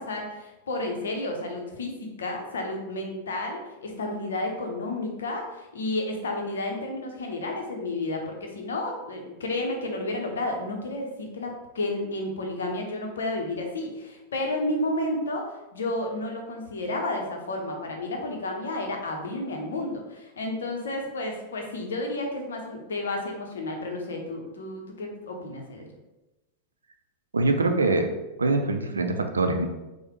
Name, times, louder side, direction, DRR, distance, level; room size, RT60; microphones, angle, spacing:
voice 1, 0.0-25.9, left 2 dB, 65° left, 2 dB, 0.6 m, -31 dB
voice 2, 27.3-28.1 28.4-29.7, right 3 dB, 75° right, 5 dB, 0.4 m, -23 dB
4.7 x 2.0 x 3.0 m, 1.0 s
figure-of-eight pair, 90°, 0 cm